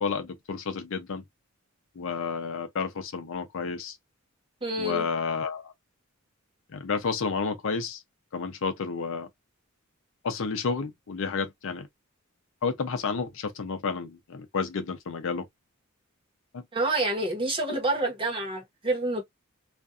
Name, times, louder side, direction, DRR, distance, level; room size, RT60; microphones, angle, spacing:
voice 1, 0.0-1.2 1.9-4.0 4.8-5.7 6.7-8.0 8.3-9.3 10.2-11.9 12.6-15.5 16.5-16.6, left 5 dB, 65° left, 0.5 m, -31 dB
voice 2, 4.6-5.0 16.7-19.2, right 2 dB, 25° right, 1.0 m, -28 dB
2.5 x 2.3 x 2.4 m
head